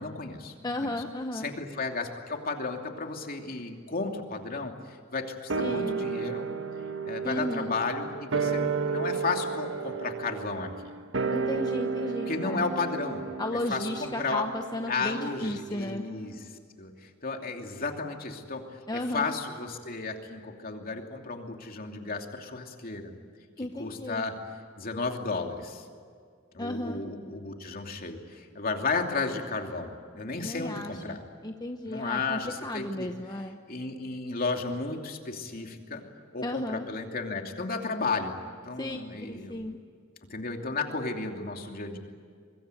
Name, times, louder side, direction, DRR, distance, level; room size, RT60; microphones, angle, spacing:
voice 1, 0.0-0.9 1.3-6.5 7.0-10.9 12.3-13.3 13.7-14.5 14.9-16.5 16.8-23.1 23.6-24.3 24.8-25.8 26.5-31.2 31.9-33.1 33.3-36.0 36.3-38.4 38.7-39.6 40.3-42.0, left 3 dB, 45° left, 3 dB, 2.8 m, -33 dB
voice 2, 0.6-1.5 5.6-6.0 7.2-7.7 11.3-12.6 13.4-16.0 18.9-19.3 23.6-24.3 26.6-27.0 30.4-33.6 36.4-36.9 38.8-39.0 39.3-39.8, left 1 dB, 20° left, 5 dB, 0.9 m, -34 dB
sound 1, 5.5-16.1 16.4-16.5, right 5 dB, 65° right, 1.4 m, -33 dB
25.0 x 21.5 x 9.2 m, 2.2 s
head